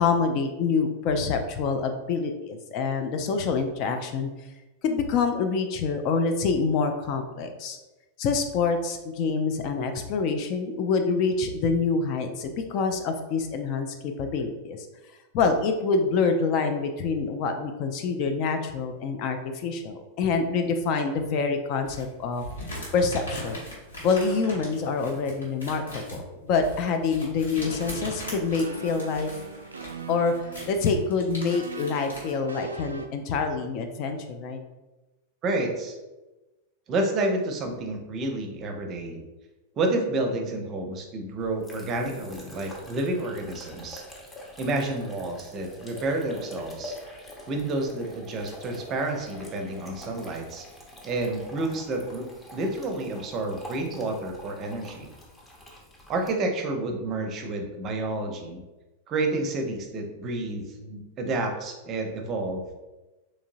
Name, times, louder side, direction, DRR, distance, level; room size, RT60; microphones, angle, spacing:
voice 1, 0.0-4.3 4.8-7.8 8.2-14.8 15.3-22.4 22.9-23.6 24.0-29.3 30.1-30.3 30.7-34.6, left 4 dB, 40° left, 6 dB, 0.4 m, -26 dB
sound 1, 21.8-32.3, equal, 75° left, 1.3 m, -40 dB
sound 2, 27.7-33.1, right 4 dB, 75° right, 0.3 m, -40 dB
voice 2, 35.4-36.0 36.9-39.2 39.8-44.0 44.6-47.0 47.5-50.7 51.0-52.3 52.5-55.1 56.1-58.6 59.1-62.6, right 2 dB, 30° right, 4 dB, 0.6 m, -29 dB
sound 3, 41.4-56.3, left 1 dB, 10° left, 0.8 m, -45 dB
3.7 x 3.0 x 2.6 m, 1.1 s
figure-of-eight pair, 90°, 0 cm